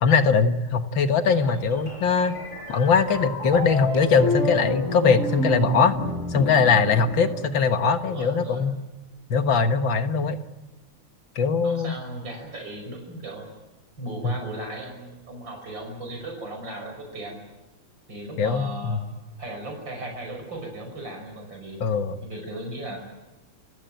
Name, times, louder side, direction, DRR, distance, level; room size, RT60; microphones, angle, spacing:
voice 1, 0.0-2.4 2.7-5.9 6.3-8.8 9.3-10.4 11.4-11.9 14.2-14.3 18.4-19.0 21.8-22.2, left 5 dB, 65° left, 9 dB, 2.1 m, -21 dB
sound 1, 1.3-8.0, left 1 dB, 30° left, 7.9 m, -30 dB
voice 2, 7.7-8.6 11.6-13.5 14.0-17.4 18.1-19.0 19.4-21.8 22.2-23.0, right 1 dB, 60° right, 3 dB, 6.4 m, -37 dB
29.5 x 16.5 x 9.1 m, 1.1 s
omnidirectional pair, 2.3 m